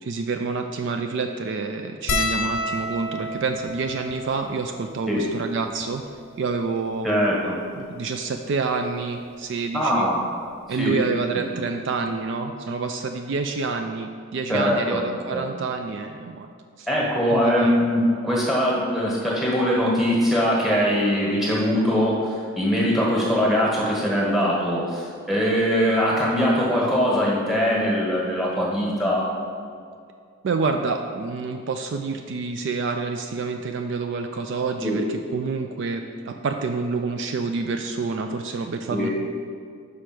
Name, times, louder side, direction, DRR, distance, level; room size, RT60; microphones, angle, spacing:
voice 1, 0.0-6.0 6.4-7.1 7.7-10.1 10.7-16.5 16.8-16.9 17.3-17.9 30.4-39.1, right 4 dB, 55° right, 5 dB, 0.3 m, -28 dB
sound 1, 2.1-6.7 7.4-7.5 7.7-7.9 9.2-9.4 10.9-11.0 11.2-11.4, left 2 dB, 70° left, 0.6 m, -31 dB
voice 2, 7.0-7.6 9.7-10.2 10.8-11.0 11.3-11.4 14.5-15.0 15.3-15.4 16.9-29.2 34.8-35.0 38.9-39.1, equal, ahead, -5 dB, 1.4 m, -22 dB
5.6 x 4.9 x 6.0 m, 2.2 s
head